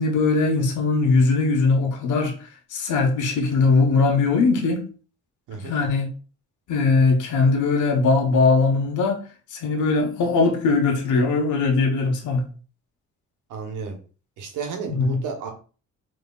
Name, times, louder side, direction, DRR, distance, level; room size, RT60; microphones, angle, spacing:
voice 1, 0.0-2.3 2.7-4.8 5.5-6.1 6.7-9.2 9.5-12.5 14.9-15.2, left 3 dB, 80° left, 1.2 m, -20 dB
voice 2, 13.5-14.0 14.4-15.5, right 5 dB, 85° right, 1.1 m, -32 dB
5.3 x 3.2 x 2.4 m
cardioid pair, 90°, 30 cm